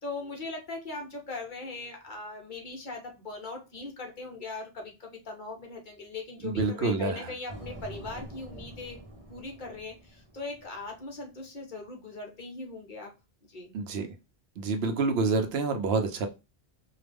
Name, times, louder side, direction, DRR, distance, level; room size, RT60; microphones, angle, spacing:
voice 1, 0.0-9.0 9.3-13.1 13.4-13.7, left 3 dB, 50° left, 1 dB, 1.0 m, -40 dB
voice 2, 6.4-7.3 13.7-14.1 14.6-16.3, right 3 dB, 80° right, 6 dB, 0.9 m, -27 dB
sound 1, 7.5-11.2, right 1 dB, 40° right, 0.7 m, -46 dB
4.7 x 2.2 x 3.4 m, 0.28 s
omnidirectional pair, 1.0 m